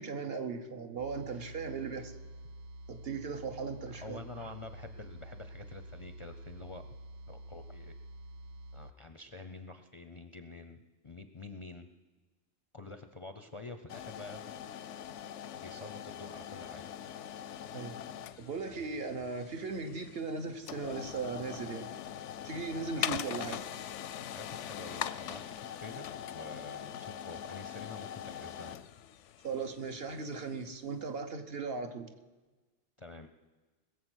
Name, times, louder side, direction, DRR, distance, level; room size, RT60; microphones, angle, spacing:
voice 1, 0.0-2.1 2.9-4.5 17.7-18.0 18.4-22.0 22.4-23.6 29.4-32.1, right 4 dB, 60° right, 6 dB, 1.2 m, -38 dB
sound 1, 1.0-8.9, right 1 dB, 80° right, 0.9 m, -48 dB
voice 2, 3.8-6.9 7.3-8.0 8.7-10.8 11.0-11.9 12.7-14.4 15.6-16.9 24.3-25.4 25.7-28.8 33.0-33.3, left 3 dB, 35° left, 8 dB, 0.5 m, -47 dB
sound 2, 13.9-30.8, left 10 dB, 85° left, 0.9 m, -42 dB
20.5 x 7.4 x 6.3 m, 1.2 s
omnidirectional pair, 1.2 m